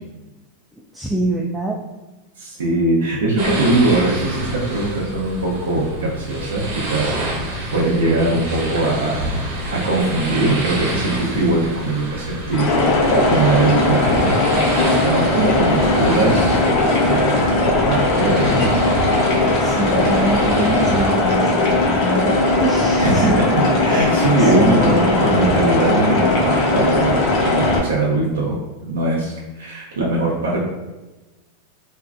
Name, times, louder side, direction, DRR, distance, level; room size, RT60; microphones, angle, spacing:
voice 1, 0.9-1.8 19.6-22.3 22.6-23.4 23.9-25.4, right 1 dB, ahead, -3 dB, 0.3 m, -25 dB
voice 2, 2.4-9.3 9.7-17.5 17.8-18.8 23.0-23.3 23.8-30.7, right 2 dB, 90° right, -4 dB, 0.5 m, -21 dB
sound 1, 3.4-21.2, right 1 dB, 65° right, 0.9 m, -28 dB
sound 2, 12.5-27.8, left 2 dB, 50° left, 0.6 m, -18 dB
2.5 x 2.2 x 2.4 m, 1.1 s
hypercardioid pair, 105°, 0 cm